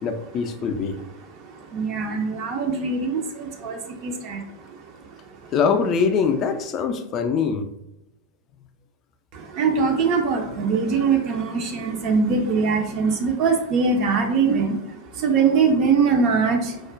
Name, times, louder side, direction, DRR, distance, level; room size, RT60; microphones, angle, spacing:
voice 1, 0.0-1.0 5.5-7.7, left 5 dB, 35° left, 8 dB, 0.3 m, -23 dB
voice 2, 1.7-4.4 9.6-14.8 15.2-16.6, right 5 dB, 40° right, 2 dB, 0.4 m, -22 dB
4.7 x 2.1 x 2.4 m, 0.91 s
figure-of-eight pair, 90°, 0 cm